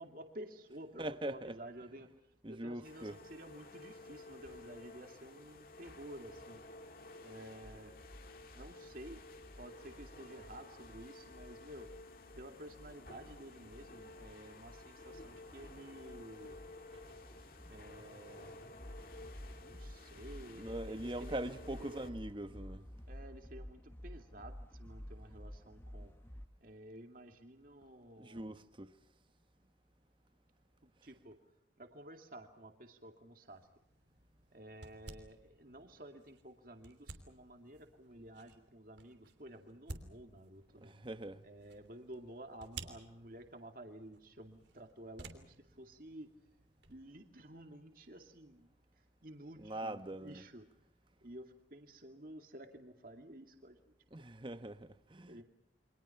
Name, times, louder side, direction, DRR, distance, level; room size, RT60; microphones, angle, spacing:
voice 1, 0.0-2.1 2.5-6.6 7.2-7.9 8.5-9.2 9.6-11.9 12.4-16.6 17.7-18.6 19.6-22.1 23.1-26.1 26.6-28.6 30.8-31.4 31.8-33.7 34.5-40.9 41.4-46.3 46.9-48.7 49.2-50.7 51.2-53.8 55.3-55.4, right 1 dB, 50° right, 2.4 m, -52 dB
voice 2, 1.0-1.6 2.4-3.2 20.5-22.9 28.2-29.0 40.8-41.5 49.6-50.4 54.1-55.4, right 1 dB, 25° right, 1.2 m, -42 dB
sound 1, 2.8-22.1, left 2 dB, 50° left, 2.3 m, -54 dB
sound 2, 7.6-26.5, equal, 15° left, 0.9 m, -53 dB
sound 3, 33.5-47.0, right 3 dB, 75° right, 3.1 m, -55 dB
29.0 x 25.0 x 5.9 m
head